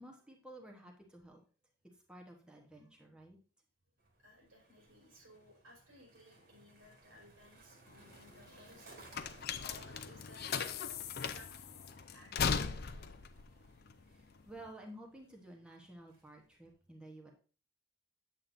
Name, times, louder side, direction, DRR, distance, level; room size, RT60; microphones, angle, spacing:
voice 1, 0.0-1.4 2.1-3.4 14.1-17.3, right 1 dB, 5° right, 0 dB, 1.0 m, -53 dB
Skateboard, 4.0-16.7, right 2 dB, 50° right, 2.0 m, -62 dB
voice 2, 4.2-11.0 11.3-11.7 12.1-12.3 12.7-13.2, left 1 dB, 90° right, -1 dB, 4.1 m, -60 dB
sound 1, 7.9-14.7, left 6 dB, 50° left, 0.5 m, -38 dB
8.6 x 7.6 x 2.6 m, 0.38 s
head